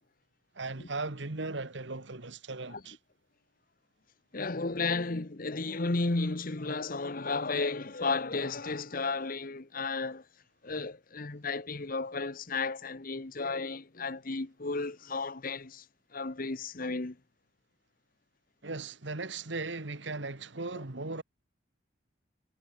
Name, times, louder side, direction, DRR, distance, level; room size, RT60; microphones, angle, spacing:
voice 1, 0.5-3.0 18.6-21.2, right 3 dB, 65° right, 1.7 m, -37 dB
voice 2, 4.3-10.2 10.6-15.8 16.1-17.2 20.7-20.8, left 3 dB, 45° left, 1.0 m, -33 dB
head